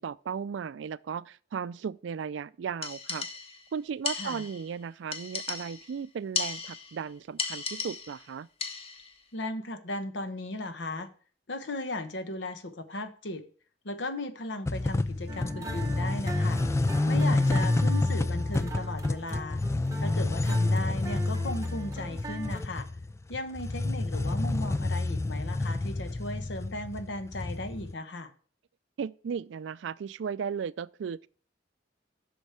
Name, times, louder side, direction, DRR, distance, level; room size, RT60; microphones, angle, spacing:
voice 1, 0.0-3.3 3.7-8.5 29.0-31.2, right 6 dB, 70° right, 0.3 m, -36 dB
sound 1, 2.8-3.7 4.0-4.7 5.1-5.9 6.3-7.0 7.4-8.3 8.6-9.1, left 5 dB, 30° left, 1.0 m, -35 dB
voice 2, 4.1-4.4 9.3-11.1 11.5-13.4 13.8-16.6 17.1-19.6 20.0-22.9 23.3-28.3, left 2 dB, 70° left, 1.0 m, -36 dB
sound 2, 14.7-27.9, left 2 dB, 15° left, 0.3 m, -29 dB
sound 3, 15.3-22.6, right 3 dB, 20° right, 1.1 m, -42 dB
8.2 x 6.3 x 4.3 m
head